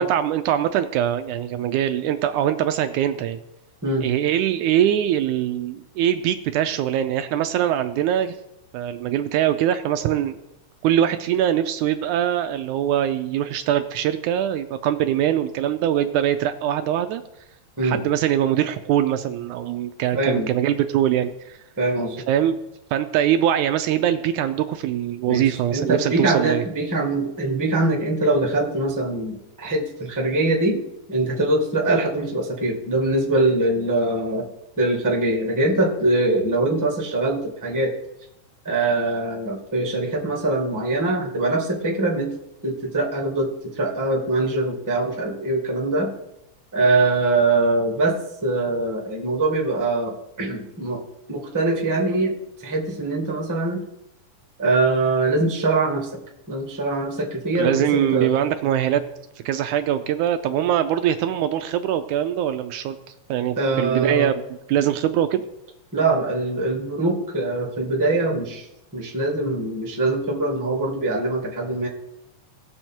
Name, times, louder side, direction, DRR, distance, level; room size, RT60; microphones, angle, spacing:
voice 1, 0.0-3.4 4.0-8.4 8.7-10.4 10.8-17.2 17.8-21.6 22.3-22.6 22.9-26.6 57.6-59.0 59.5-63.0 63.3-64.3 64.7-65.4, right 10 dB, 80° right, 8 dB, 1.9 m, -22 dB
voice 2, 20.1-20.5 21.8-22.2 25.3-30.8 31.1-34.5 34.8-37.9 38.6-42.3 42.6-46.1 46.7-51.0 51.3-52.3 52.6-53.8 54.6-56.1 56.5-58.3 63.6-64.3 65.9-68.7 68.9-71.9, right 2 dB, 10° right, 0 dB, 1.3 m, -23 dB
18.0 x 7.1 x 4.5 m, 0.86 s
omnidirectional pair, 3.7 m